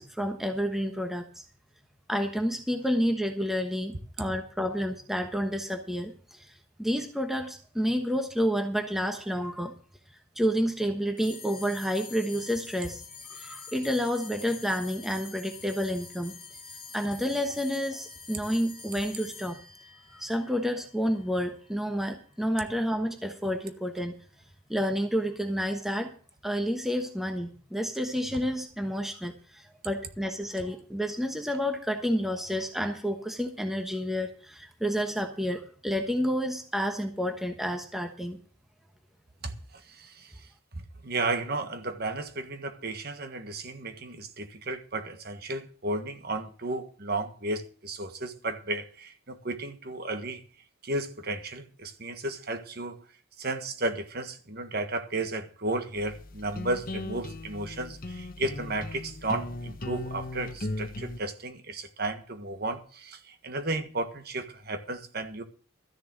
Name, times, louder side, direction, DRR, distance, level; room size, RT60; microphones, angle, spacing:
voice 1, 0.0-1.4 2.1-6.5 6.8-9.7 10.4-13.0 13.3-16.3 16.9-19.6 20.1-24.2 24.7-26.1 26.4-38.4, equal, ahead, 1.2 m, -30 dB
sound 1, 11.2-21.8, left 5 dB, 25° left, 2.8 m, -46 dB
voice 2, 39.9-40.3 40.7-50.4 50.8-53.0 53.4-65.4, right 2 dB, 50° right, 1.6 m, -33 dB
sound 2, 55.9-61.2, left 2 dB, 40° left, 1.0 m, -38 dB
13.5 x 6.7 x 7.8 m
head